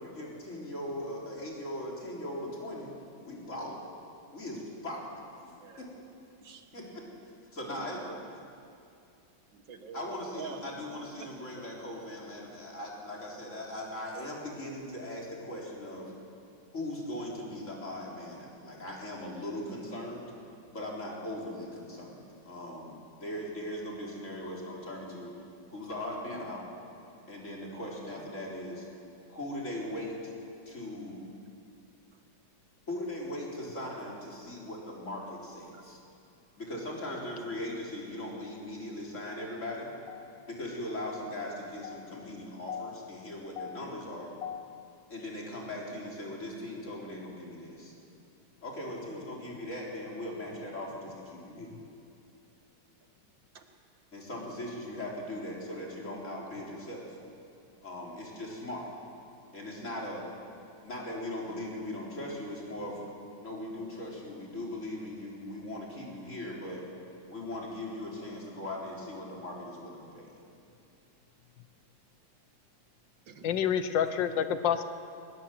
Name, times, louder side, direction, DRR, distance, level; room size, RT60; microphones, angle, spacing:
voice 1, 0.0-2.9 3.2-3.8 4.3-5.1 5.8-5.9 6.7-7.0 7.5-8.0 9.9-16.1 16.7-20.3 20.7-25.3 25.7-26.6 27.3-28.9 29.3-30.2 30.7-31.2 32.9-36.0 36.6-39.9 40.5-44.3 45.1-47.9 48.6-51.7 54.1-57.2 57.8-58.9 59.5-60.3 60.8-63.0 63.4-66.8 67.3-70.3, left 1 dB, 40° left, -3 dB, 4.2 m, -39 dB
voice 2, 5.5-5.9 6.4-6.8 8.0-8.3 9.5-11.3 28.1-28.3 32.1-32.2 35.7-35.8 53.5-53.7 73.3-73.5 74.1-74.3, right 5 dB, 90° right, 6 dB, 2.2 m, -47 dB
voice 3, 41.8-42.2 42.7-43.0 43.6-43.8 44.4-44.9 73.4-74.8, left 8 dB, 85° left, 10 dB, 1.6 m, -31 dB
20.5 x 19.5 x 7.7 m, 2.6 s
omnidirectional pair, 2.0 m